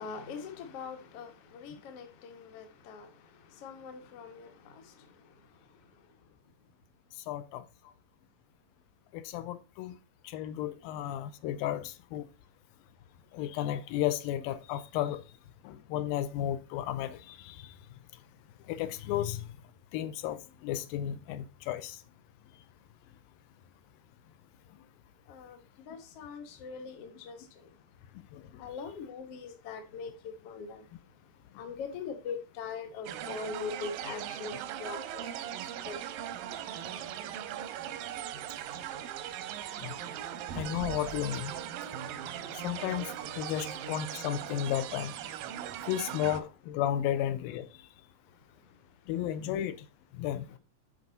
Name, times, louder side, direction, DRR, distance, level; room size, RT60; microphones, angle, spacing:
voice 1, 0.0-6.2 7.8-7.9 10.8-10.9 25.3-27.7 28.6-31.0 31.5-36.1 38.6-38.7 39.1-39.9 40.3-40.4 42.5-42.6 48.3-48.8, left 5 dB, 60° left, 1.6 m, -43 dB
voice 2, 7.3-7.6 9.1-10.0 10.2-12.2 13.3-15.2 15.6-17.7 18.7-19.5 19.9-22.0 28.3-28.4 39.8-39.9 40.6-41.5 42.5-45.1 45.9-47.7 49.1-49.8 50.2-50.5, left 11 dB, 90° left, 2.4 m, -33 dB
sound 1, 33.1-46.4, right 10 dB, 85° right, 2.3 m, -39 dB
8.7 x 4.8 x 4.0 m
omnidirectional pair, 4.1 m